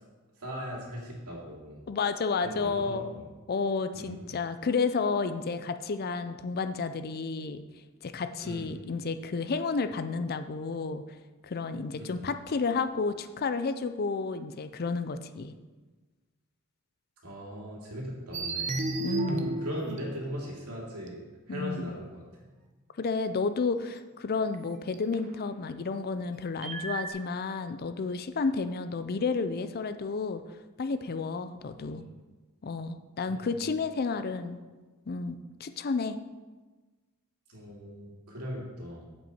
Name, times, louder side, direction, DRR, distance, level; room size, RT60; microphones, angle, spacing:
voice 1, 0.4-1.8 2.4-3.3 3.9-4.2 8.4-8.7 12.0-12.3 17.2-21.2 21.5-22.2 31.8-32.1 33.3-33.6 37.5-39.1, equal, 85° right, -3 dB, 2.7 m, -39 dB
voice 2, 1.9-7.6 8.0-11.0 11.4-15.5 19.0-19.5 21.5-21.9 23.0-30.4 30.8-32.0 32.6-34.6 35.1-36.2, left 4 dB, 45° left, 10 dB, 0.5 m, -31 dB
sound 1, 18.3-20.6 21.1-21.2 24.5-24.6 24.9-25.2 26.6-27.1, right 3 dB, 35° right, 0.7 m, -33 dB
8.1 x 7.7 x 4.4 m, 1.3 s
head